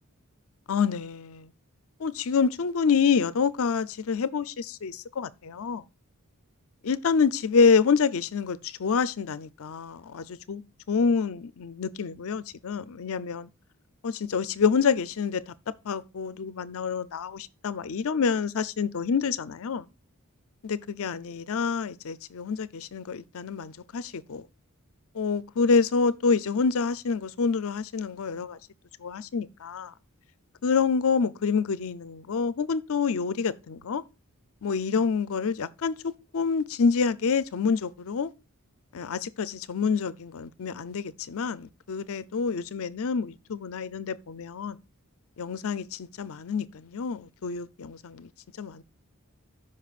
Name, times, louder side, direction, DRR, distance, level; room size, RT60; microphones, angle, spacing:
voice 1, 0.7-1.5 2.0-5.8 6.8-10.6 10.9-13.5 14.0-15.5 15.8-19.9 20.6-24.5 25.1-28.6 29.0-29.9 30.6-34.0 34.6-38.3 38.9-44.8 45.4-48.3 48.6-48.8, left 5 dB, 65° left, 0.5 m, -27 dB
13.5 x 5.3 x 2.4 m
head